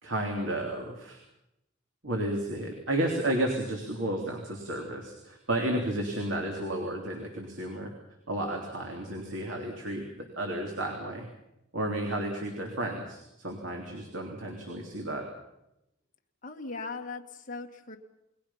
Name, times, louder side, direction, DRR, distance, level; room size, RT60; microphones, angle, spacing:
voice 1, 0.0-1.2 2.0-7.9 8.3-10.1 10.4-11.3 11.7-15.2, right 1 dB, 65° right, 1 dB, 3.4 m, -32 dB
voice 2, 16.4-18.0, left 3 dB, 40° left, 2 dB, 1.9 m, -39 dB
29.0 x 21.5 x 5.8 m, 0.86 s
head